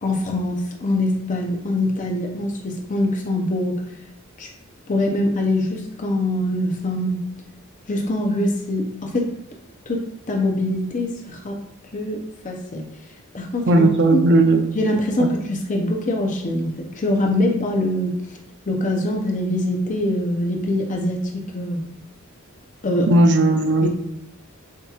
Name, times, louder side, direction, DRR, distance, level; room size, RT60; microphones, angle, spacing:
voice 1, 0.0-3.8 4.4-4.5 4.9-7.3 7.9-9.3 9.9-11.6 11.9-12.9 13.3-13.9 14.1-14.2 14.7-18.2 18.7-21.9 22.8-23.2 23.8-23.9, left 1 dB, 35° left, 1 dB, 0.6 m, -23 dB
voice 2, 13.7-14.6 15.2-15.3 23.1-23.9, right 2 dB, 55° right, 5 dB, 0.6 m, -16 dB
7.2 x 2.9 x 2.4 m, 0.84 s
head